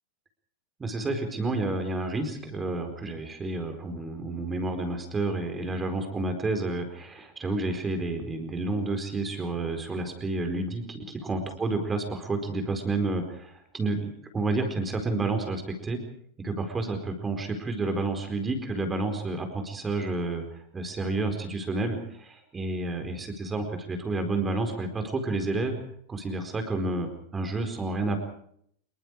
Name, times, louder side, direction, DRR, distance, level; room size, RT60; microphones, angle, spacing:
voice 1, 0.8-16.0 16.4-20.4 20.7-25.8 26.1-28.2, right 2 dB, 15° right, 6 dB, 4.5 m, -30 dB
26.5 x 23.0 x 4.8 m, 0.67 s
figure-of-eight pair, 90°, 0 cm